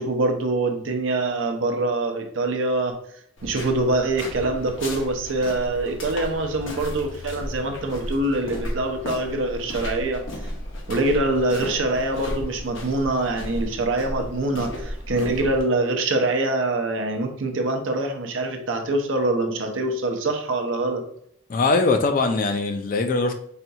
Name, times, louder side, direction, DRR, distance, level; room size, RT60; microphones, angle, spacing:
voice 1, 0.0-3.0 3.4-10.2 10.9-21.0, right 2 dB, 70° right, 4 dB, 0.6 m, -24 dB
sound 1, 3.4-15.6, left 1 dB, 70° left, 0.7 m, -34 dB
voice 2, 21.5-23.3, left 3 dB, 40° left, 7 dB, 0.3 m, -21 dB
4.2 x 2.3 x 2.6 m, 0.67 s
head